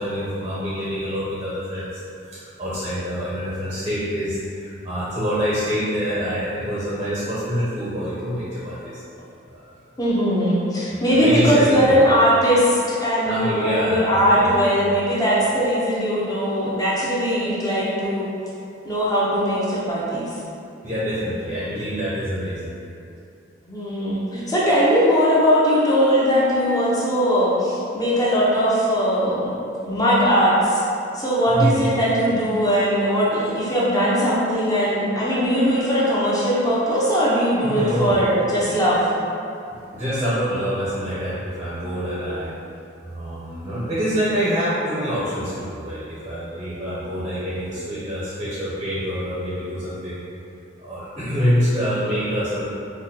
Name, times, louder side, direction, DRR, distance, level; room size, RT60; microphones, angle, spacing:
voice 1, 0.0-2.0 2.3-9.0 9.5-9.7 10.9-12.0 13.2-14.5 20.8-22.7 31.5-31.9 37.6-38.3 39.7-42.5 43.0-50.2 50.8-52.6, equal, 25° right, -9 dB, 0.6 m, -26 dB
voice 2, 10.0-18.3 18.8-20.3 23.7-29.5 29.8-30.8 31.1-39.1, equal, 20° left, -8 dB, 0.6 m, -20 dB
4.1 x 2.2 x 2.7 m, 2.7 s
head